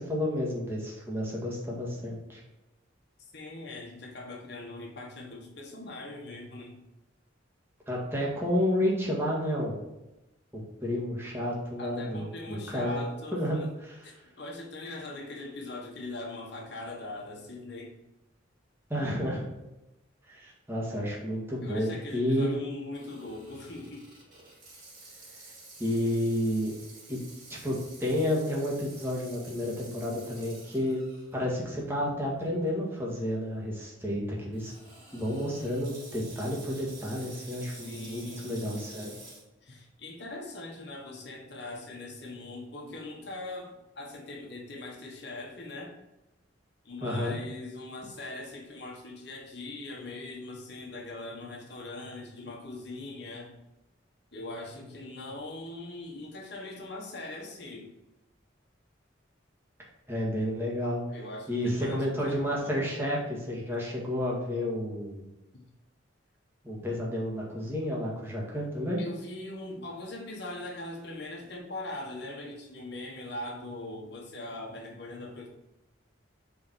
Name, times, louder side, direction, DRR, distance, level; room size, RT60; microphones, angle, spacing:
voice 1, 0.0-2.4 7.9-9.8 10.5-13.0 13.3-13.6 13.8-13.9 18.9-19.4 20.3-22.5 25.8-26.7 27.1-27.2 27.5-31.0 31.3-34.7 35.1-39.2 47.0-47.4 60.1-61.0 61.5-65.3 66.6-69.0, left 1 dB, 10° right, -4 dB, 1.9 m, -31 dB
voice 2, 3.2-6.9 11.8-13.7 14.0-18.0 21.6-24.1 37.6-38.6 39.6-46.0 46.8-53.5 54.3-57.9 61.1-62.9 65.5-65.6 69.0-75.5, left 2 dB, 60° left, 0 dB, 1.6 m, -41 dB
Water tap faucet / Sink (filling or washing), 22.9-31.3 31.8-31.9 32.7-32.9 34.5-39.4, right 2 dB, 45° right, 2.8 m, -50 dB
4.9 x 4.9 x 6.1 m, 0.98 s
head